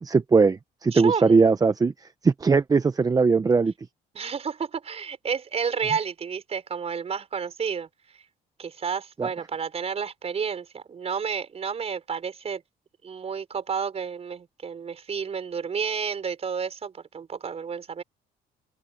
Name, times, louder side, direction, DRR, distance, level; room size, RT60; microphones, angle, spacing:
voice 1, 0.0-3.7 9.2-9.3, right 4 dB, 20° right, 0.7 m, -20 dB
voice 2, 0.9-1.4 4.1-7.9 8.6-12.6 13.0-18.0, right 6 dB, 35° right, 5.1 m, -31 dB
cardioid pair, 110°, 17 cm